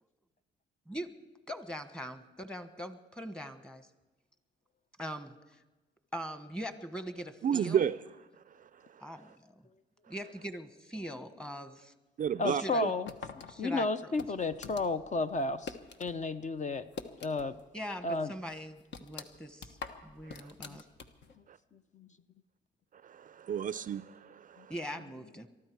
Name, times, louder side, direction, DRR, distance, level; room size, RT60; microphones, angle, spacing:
voice 1, 1.5-3.9 5.0-5.6 6.1-7.9 9.0-9.6 10.1-11.9 12.6-12.8 13.5-14.1 17.7-19.8 20.0-20.8 24.7-25.5, equal, 5° left, 9 dB, 1.3 m, -42 dB
voice 2, 7.4-8.0 12.2-12.9 20.3-20.5 21.5-21.6 23.0-24.7, right 8 dB, 45° right, 16 dB, 0.4 m, -32 dB
voice 3, 12.4-13.1 13.6-16.8 17.2-17.6 18.0-18.3 20.6-20.8 21.7-22.1 24.6-24.7, left 3 dB, 35° left, 11 dB, 0.6 m, -32 dB
sound 1, 13.1-16.2 16.5-17.7 18.0-18.1 18.5-21.4, left 5 dB, 65° left, 1.3 m, -45 dB
23.0 x 13.5 x 4.7 m, 1.1 s
cardioid pair, 90°, 20 cm